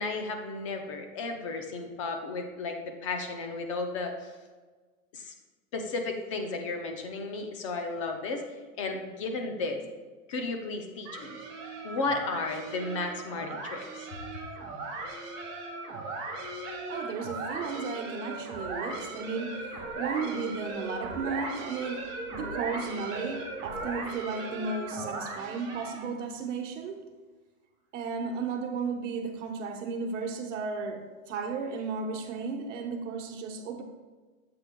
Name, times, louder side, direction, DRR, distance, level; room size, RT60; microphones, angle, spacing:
voice 1, 0.0-4.3 5.1-5.3 5.7-8.4 8.8-9.8 10.3-11.4 11.8-14.1, left 3 dB, 25° left, 4 dB, 0.4 m, -34 dB
sound 1, 11.0-26.2, right 2 dB, 35° right, 1.9 m, -38 dB
voice 2, 16.6-27.1 27.9-33.8, right 5 dB, 60° right, 3 dB, 1.2 m, -34 dB
7.9 x 7.6 x 2.2 m, 1.4 s
supercardioid pair, 165°, 42 cm